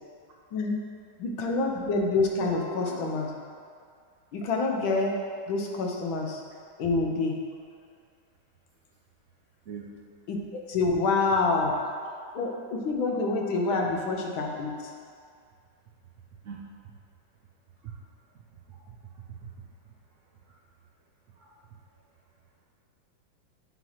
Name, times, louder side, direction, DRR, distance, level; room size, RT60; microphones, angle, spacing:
voice 1, 1.2-3.3 4.3-5.2 5.5-6.4 6.8-7.4 10.3-11.7 12.3-14.9, left 3 dB, 85° left, 1 dB, 1.6 m, -27 dB
voice 2, 16.4-16.9 17.8-17.9 18.3-18.4 18.7-19.5 20.5-20.6 21.3-21.5, right 7 dB, 70° right, -3 dB, 0.7 m, -43 dB
7.7 x 3.0 x 5.6 m, 2.2 s
omnidirectional pair, 2.1 m